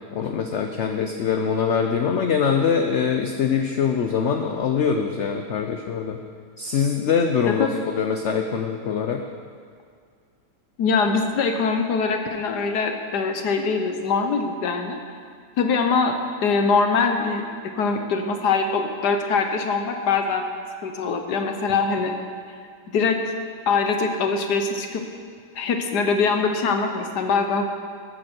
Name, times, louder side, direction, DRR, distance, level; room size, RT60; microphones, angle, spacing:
voice 1, 0.1-6.2 6.6-9.2, left 6 dB, 60° left, 5 dB, 0.8 m, -23 dB
voice 2, 7.5-7.8 10.8-15.0 15.6-17.4 17.8-20.5 20.8-22.1 22.9-23.2 23.7-25.0 25.5-27.7, left 4 dB, 75° left, 5 dB, 1.5 m, -23 dB
14.0 x 13.0 x 4.4 m, 2.1 s
omnidirectional pair, 1.8 m